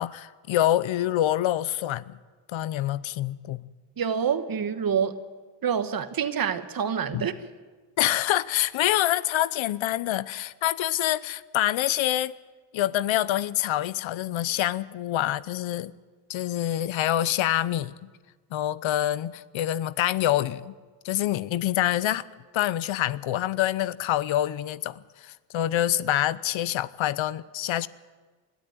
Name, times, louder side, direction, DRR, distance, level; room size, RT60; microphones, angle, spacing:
voice 1, 0.0-2.2 2.5-3.7 7.1-7.3 8.0-12.4 12.7-15.9 16.3-18.1 18.5-20.7 21.0-22.2 22.5-27.9, left 13 dB, 75° left, 18 dB, 0.8 m, -26 dB
voice 2, 4.0-5.2 5.6-7.3, right 7 dB, 45° right, 11 dB, 1.4 m, -27 dB
21.5 x 13.5 x 9.5 m, 1.4 s
cardioid pair, 95°, 47 cm